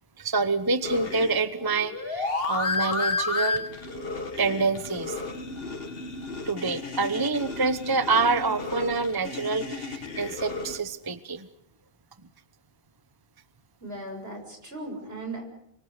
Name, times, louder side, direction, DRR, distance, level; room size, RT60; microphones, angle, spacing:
voice 1, 0.2-3.6 4.4-5.2 6.4-11.5, right 3 dB, 20° right, 11 dB, 0.9 m, -27 dB
sound 1, 0.8-10.8, left 3 dB, 65° left, 2.2 m, -32 dB
voice 2, 13.8-15.4, right 2 dB, 70° right, 3 dB, 7.2 m, -37 dB
28.0 x 24.5 x 6.7 m, 0.75 s
omnidirectional pair, 1.1 m